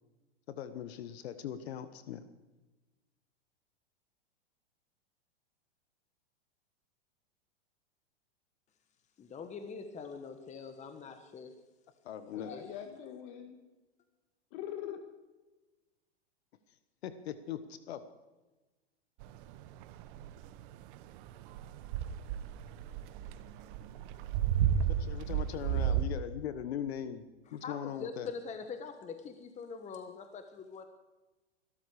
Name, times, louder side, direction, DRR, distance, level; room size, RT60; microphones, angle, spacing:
voice 1, 0.5-2.2 12.0-12.5 17.0-18.0 25.0-27.3 27.5-28.3, left 9 dB, 70° left, 12 dB, 1.3 m, -40 dB
voice 2, 9.2-11.6 12.3-12.6 27.5-30.8, left 5 dB, 20° left, 7 dB, 1.3 m, -44 dB
voice 3, 12.3-13.6 14.5-15.0 25.0-26.0, left 10 dB, 50° left, 7 dB, 1.9 m, -44 dB
sound 1, 19.2-26.1, right 9 dB, 50° right, 1.1 m, -33 dB
23.0 x 13.0 x 4.9 m, 1.2 s
hypercardioid pair, 115°, 33 cm